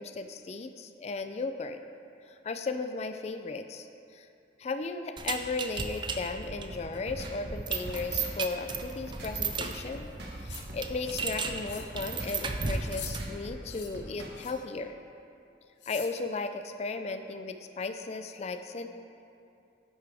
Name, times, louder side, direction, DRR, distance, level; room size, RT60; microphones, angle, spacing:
voice 1, 0.0-1.8 2.2-3.9 4.1-4.3 4.6-10.1 10.4-15.0 15.9-18.9, left 3 dB, 35° left, 8 dB, 0.3 m, -35 dB
sound 1, 5.2-13.4, right 4 dB, 25° right, 0.4 m, -35 dB
sound 2, 6.7-14.5, equal, 65° right, 1.5 m, -44 dB
sound 3, 10.5-10.7 11.0-11.4 11.7-11.9 12.2-12.4 12.9-13.1 13.6-13.9 14.4-14.7 15.8-16.1, left 8 dB, 85° left, 1.0 m, -44 dB
11.0 x 8.2 x 3.4 m, 2.6 s
head